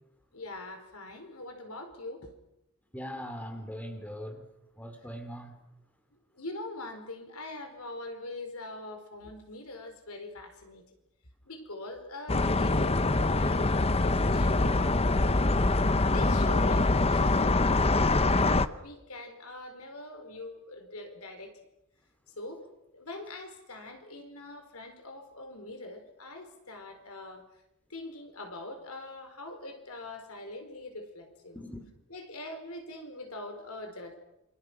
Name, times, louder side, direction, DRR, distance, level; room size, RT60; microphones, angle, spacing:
voice 1, 0.3-2.3 6.3-10.8 11.5-15.4 16.1-21.5 22.4-22.6 22.9-27.4 27.9-31.7 32.1-34.2, left 2 dB, 75° left, 7 dB, 4.6 m, -43 dB
voice 2, 2.9-4.4 4.8-5.6 31.5-31.8, equal, 5° left, 7 dB, 3.1 m, -40 dB
sound 1, 12.3-18.7, left 2 dB, 30° left, 0.9 m, -24 dB
28.5 x 27.0 x 6.2 m, 0.89 s
head